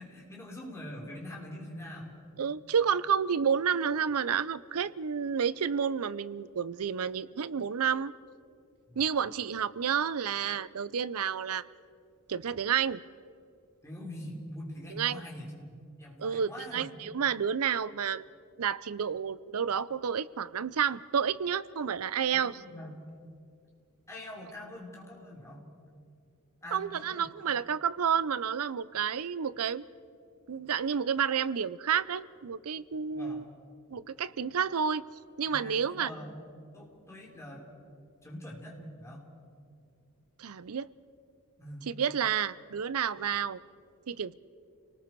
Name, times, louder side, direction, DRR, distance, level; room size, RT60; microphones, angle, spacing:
voice 1, 0.0-2.2 8.9-9.3 13.8-15.7 16.0-16.9 22.3-23.0 24.1-25.7 26.6-27.3 33.1-33.5 35.5-36.4 36.7-37.6 38.2-39.3 41.6-41.9, left 1 dB, 15° left, -2 dB, 3.8 m, -44 dB
voice 2, 2.4-8.1 9.0-11.6 12.3-13.0 15.0-15.2 16.2-18.2 18.6-22.5 26.7-29.8 30.5-33.4 33.9-35.0 35.4-36.1 40.4-40.9 41.9-43.6 44.1-44.3, right 7 dB, 75° right, 18 dB, 0.5 m, -30 dB
30.0 x 19.5 x 4.6 m, 2.5 s
head